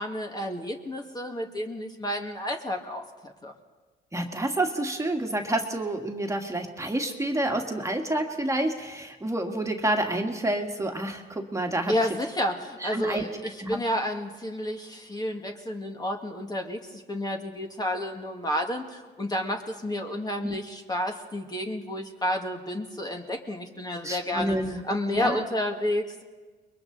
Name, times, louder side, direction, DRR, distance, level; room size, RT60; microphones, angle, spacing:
voice 1, 0.0-3.5 11.9-26.2, left 1 dB, 20° left, 2 dB, 1.8 m, -31 dB
voice 2, 4.1-11.9 12.8-13.2 13.6-13.8 20.4-20.5 24.0-24.8 25.1-25.5, right 1 dB, 15° right, 2 dB, 2.0 m, -28 dB
29.5 x 22.0 x 4.0 m, 1.3 s
cardioid pair, 90°, 20 cm